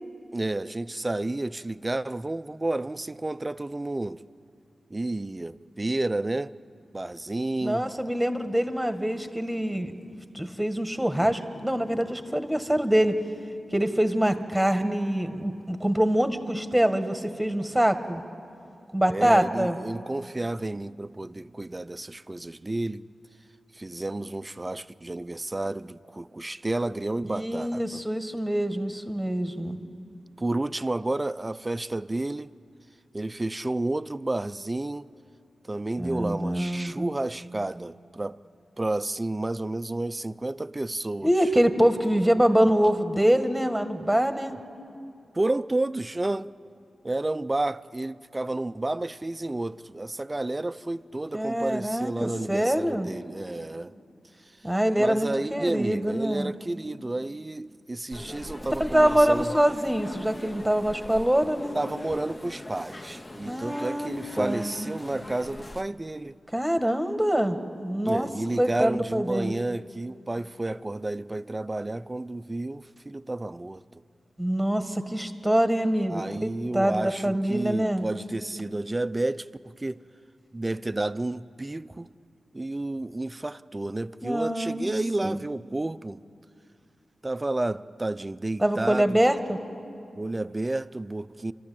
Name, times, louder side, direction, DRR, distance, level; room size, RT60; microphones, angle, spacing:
voice 1, 0.3-4.2 4.9-6.5 6.9-7.9 19.1-23.0 23.7-28.0 30.4-32.5 33.1-35.1 35.6-38.4 38.8-41.3 45.3-46.5 47.0-53.9 54.4-54.7 55.0-59.5 61.7-66.4 68.1-74.0 76.1-80.0 80.5-82.1 82.5-86.2 87.2-89.2 90.1-91.5, right 2 dB, 25° right, 0.5 m, -31 dB
voice 2, 7.6-10.1 10.3-13.2 13.7-18.2 18.9-19.8 27.2-29.8 36.0-37.1 41.2-44.5 51.3-53.1 54.6-56.5 58.8-61.8 63.4-64.1 64.4-64.9 66.5-68.3 68.6-69.5 74.4-78.1 84.2-84.9 85.2-85.4 88.6-89.6, right 1 dB, 5° right, 1.6 m, -25 dB
sound 1, 58.1-65.8, left 1 dB, 30° left, 0.8 m, -41 dB
30.0 x 13.0 x 8.5 m
wide cardioid pair, 85°, 0 cm